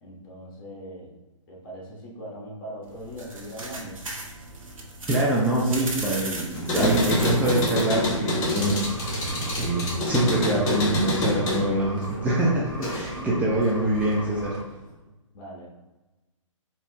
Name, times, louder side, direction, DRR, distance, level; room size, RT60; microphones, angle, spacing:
voice 1, 0.0-1.1 1.5-4.0 13.1-13.7 15.3-15.7, equal, 45° left, -2 dB, 1.3 m, -40 dB
sound 1, 2.8-10.7, right 2 dB, 90° right, 0.9 m, -38 dB
voice 2, 5.1-14.6, right 1 dB, 10° right, -6 dB, 0.5 m, -25 dB
sound 2, 6.5-13.3 13.6-14.5, left 1 dB, 20° left, 0.9 m, -28 dB
sound 3, 8.6-14.6, equal, 40° right, 1.1 m, -38 dB
4.2 x 2.8 x 3.3 m, 1.1 s
hypercardioid pair, 130°, 17 cm